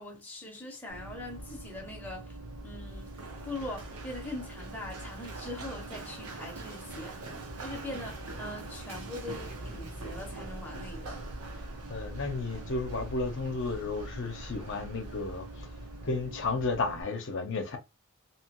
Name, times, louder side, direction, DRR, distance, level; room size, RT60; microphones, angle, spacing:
voice 1, 0.0-2.4 2.6-3.2 3.4-7.2 7.6-11.2, left 2 dB, 10° left, 0.7 m, -42 dB
Run, 0.9-17.0, right 2 dB, 85° right, 0.9 m, -42 dB
voice 2, 11.6-15.7 16.0-17.8, left 3 dB, 55° left, 0.6 m, -33 dB
2.9 x 2.3 x 2.9 m
head